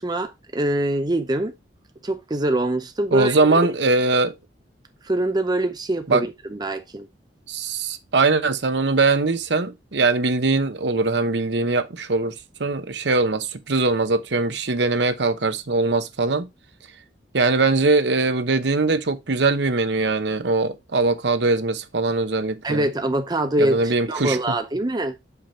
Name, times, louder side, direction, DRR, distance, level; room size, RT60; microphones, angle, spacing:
voice 1, 0.0-1.5 2.0-3.7 5.0-7.1 22.6-25.1, right 1 dB, 20° right, 0.6 m, -24 dB
voice 2, 3.1-4.3 6.1-6.2 7.5-16.5 17.3-22.9 23.6-24.5, right 3 dB, 65° right, 0.9 m, -21 dB
5.7 x 5.6 x 4.3 m
head